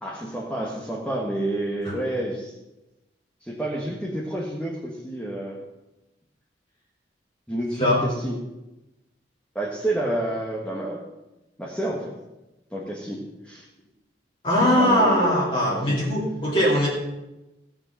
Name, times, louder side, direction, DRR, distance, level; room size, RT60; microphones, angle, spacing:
voice 1, 0.0-2.5 3.4-5.6 7.5-8.4 9.6-11.0 11.6-12.1 12.7-13.7 14.8-16.0, right 1 dB, 5° left, -4 dB, 1.7 m, -29 dB
voice 2, 14.4-16.9, equal, 30° left, -6 dB, 2.8 m, -20 dB
16.5 x 7.6 x 5.7 m, 0.98 s
head